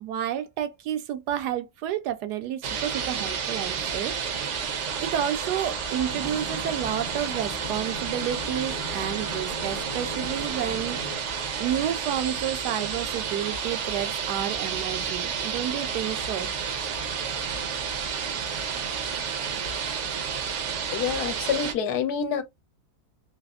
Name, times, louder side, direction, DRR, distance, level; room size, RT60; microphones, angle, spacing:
voice 1, 0.0-4.5 5.0-11.0 11.6-16.5, right 10 dB, 80° right, 1.2 m, -30 dB
sound 1, 2.6-21.7, right 6 dB, 60° right, 0.8 m, -31 dB
sound 2, 6.1-11.2, left 1 dB, 25° left, 0.6 m, -40 dB
voice 2, 20.9-22.4, left 7 dB, 80° left, 1.1 m, -27 dB
3.2 x 2.0 x 2.3 m
omnidirectional pair, 1.7 m